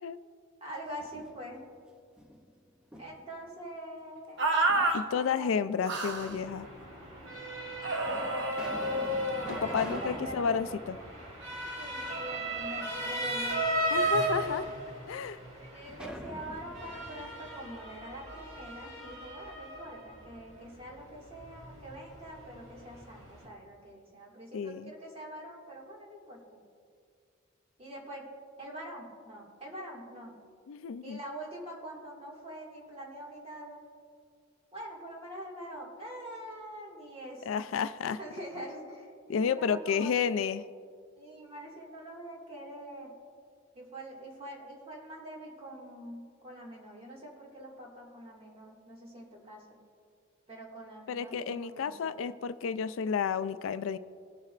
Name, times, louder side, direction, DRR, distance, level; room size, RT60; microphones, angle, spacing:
voice 1, 0.6-1.6 3.0-4.5 5.1-5.7 9.5-10.7 11.8-13.6 15.6-26.6 27.8-28.3 28.6-30.4 31.0-33.8 34.7-37.7 38.1-40.1 41.2-43.1 43.8-49.8 50.5-52.2, right 1 dB, 30° right, -2 dB, 2.0 m, -44 dB
sound 1, 0.7-1.7 2.2-3.4 4.7-5.5 6.4-6.5 7.3-7.4 8.0-12.1 12.5-12.6 15.9-18.7, equal, 5° right, 0.6 m, -46 dB
sound 2, 4.4-5.0 5.8-6.3 7.8-10.2, right 1 dB, 60° right, 0.8 m, -30 dB
voice 2, 4.9-6.7 9.5-11.0 13.9-14.7 15.1-15.4 24.5-24.9 30.7-31.2 37.5-38.2 39.3-40.6 51.1-54.0, left 6 dB, 75° left, 14 dB, 0.4 m, -31 dB
Motor vehicle (road) / Siren, 6.1-23.5, right 2 dB, 80° right, 2.7 m, -37 dB
19.0 x 7.5 x 2.5 m, 2.2 s
head